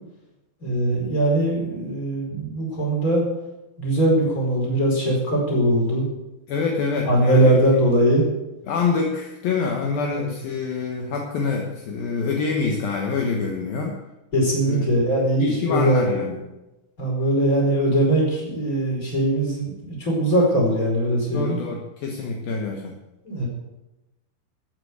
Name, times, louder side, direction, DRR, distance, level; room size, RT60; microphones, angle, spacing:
voice 1, 0.6-3.2 3.8-6.1 7.1-8.3 10.2-10.3 14.3-16.3 17.0-21.6 23.2-23.5, right 1 dB, 20° left, -2 dB, 5.0 m, -21 dB
voice 2, 6.5-7.6 8.7-14.0 14.7-14.8 15.4-16.4 21.3-23.0, left 4 dB, 70° left, 1 dB, 2.9 m, -26 dB
14.0 x 8.2 x 8.0 m, 0.98 s
omnidirectional pair, 4.7 m